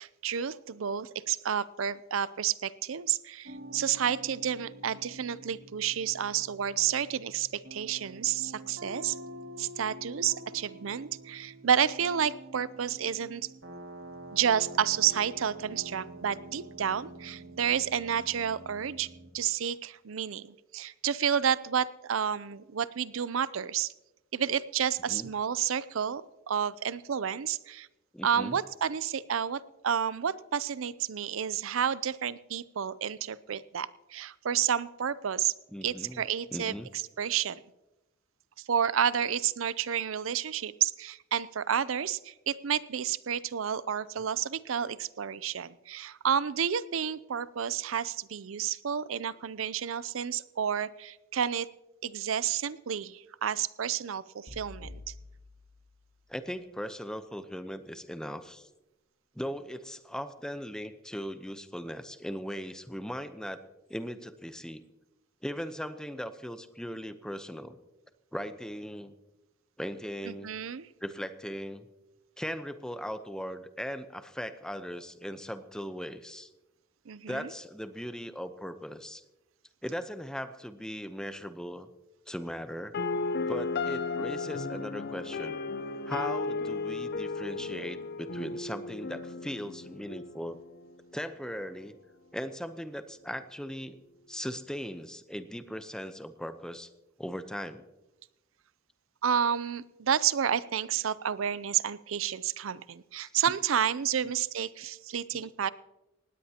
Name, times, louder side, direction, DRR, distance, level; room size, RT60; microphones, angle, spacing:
voice 1, 0.0-9.2 9.6-13.5 14.3-19.1 19.3-23.9 24.3-27.9 28.2-35.5 35.8-36.7 37.2-37.6 38.7-51.7 52.0-55.1 70.3-70.9 77.1-77.5 99.2-105.7, right 8 dB, 85° right, 18 dB, 0.5 m, -30 dB
sound 1, 3.4-19.3, right 1 dB, 70° right, 2.4 m, -47 dB
voice 2, 28.1-28.6 35.7-36.2 36.5-36.9 44.2-44.3 56.3-58.7 59.3-63.6 63.9-64.8 65.4-67.8 68.3-69.1 69.8-70.5 71.0-71.9 72.4-76.5 77.3-79.2 79.8-81.9 82.3-82.9 83.5-85.6 86.1-90.6 91.1-91.9 92.3-94.0 94.3-96.9 97.2-97.8 103.2-103.6 104.2-104.3 105.3-105.5, equal, 5° left, 10 dB, 0.8 m, -38 dB
sound 2, 54.5-56.7, left 2 dB, 75° left, 2.0 m, -49 dB
sound 3, 82.9-90.9, left 4 dB, 55° left, 0.7 m, -34 dB
19.0 x 17.0 x 2.9 m, 0.98 s
head